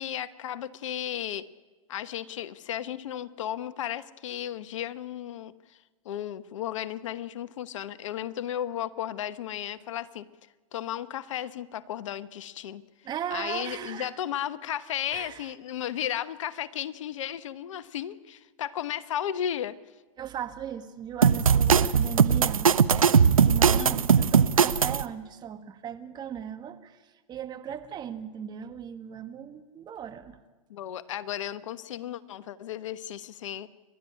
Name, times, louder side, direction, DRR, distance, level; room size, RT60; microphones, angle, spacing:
voice 1, 0.0-1.4 1.9-5.5 6.0-10.3 10.7-12.8 13.3-19.8 23.8-24.0 30.7-33.7, left 11 dB, 65° left, 13 dB, 1.1 m, -34 dB
voice 2, 13.0-14.1 15.1-15.5 20.2-22.7 23.3-30.4, right 9 dB, 25° right, 8 dB, 1.6 m, -37 dB
sound 1, 21.2-25.0, right 6 dB, 90° right, 0.8 m, -20 dB
29.0 x 12.5 x 9.8 m, 1.3 s
hypercardioid pair, 115°, 17 cm